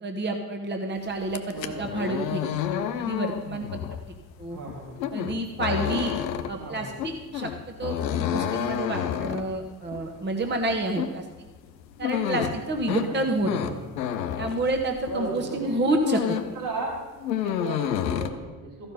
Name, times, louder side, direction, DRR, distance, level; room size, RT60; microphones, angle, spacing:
voice 1, 0.0-3.7 4.4-4.6 5.1-6.1 6.5-7.5 7.8-11.2 12.0-13.8 14.4-16.2, right 2 dB, 20° right, 3 dB, 1.2 m, -29 dB
sound 1, 1.2-15.3 15.6-16.6 16.9-18.3, left 9 dB, 85° left, 0.6 m, -30 dB
voice 2, 1.5-2.0 4.5-5.1 6.6-6.9 12.9-14.0 15.1-15.9 16.5-17.0 17.4-18.9, right 3 dB, 70° right, -4 dB, 3.5 m, -36 dB
14.0 x 5.4 x 5.5 m, 1.2 s
figure-of-eight pair, 45°, 49 cm